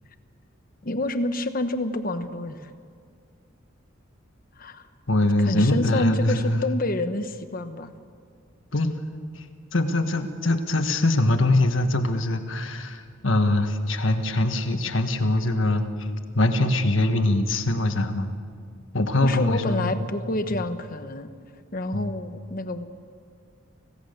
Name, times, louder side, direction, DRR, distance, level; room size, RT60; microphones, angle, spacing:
voice 1, 0.8-2.7 4.6-4.9 5.5-7.9 19.2-21.3 21.7-22.9, left 2 dB, 45° left, 9 dB, 1.1 m, -28 dB
voice 2, 5.1-6.6 8.7-9.0 9.3-9.5 9.7-16.1 16.3-18.3 18.9-19.9 21.9-22.1, left 1 dB, 70° left, 6 dB, 1.5 m, -23 dB
25.5 x 17.0 x 6.7 m, 2.2 s
head